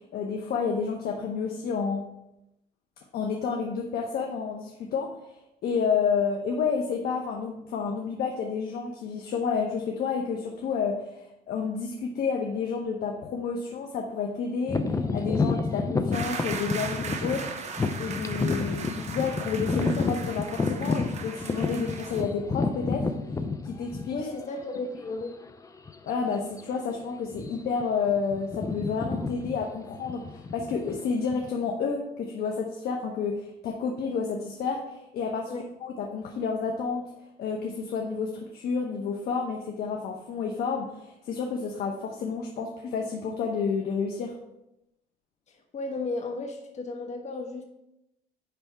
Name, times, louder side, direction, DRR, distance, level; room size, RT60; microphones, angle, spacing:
voice 1, 0.0-2.1 3.1-5.1 5.6-17.5 18.0-23.1 23.6-24.2 26.0-37.1 37.4-44.4, left 5 dB, 65° left, 2 dB, 0.9 m, -30 dB
sound 1, 14.7-24.5 25.1-25.2 25.9-26.1 26.4-26.6 27.3-27.8 28.1-31.5, left 4 dB, 20° left, 0.7 m, -30 dB
sound 2, 16.1-22.2, right 5 dB, 40° right, 1.0 m, -38 dB
voice 2, 24.1-25.4 35.5-35.7 45.5-47.6, left 3 dB, 45° left, 2 dB, 1.3 m, -34 dB
10.0 x 3.4 x 4.7 m, 0.86 s
cardioid pair, 110°, 17 cm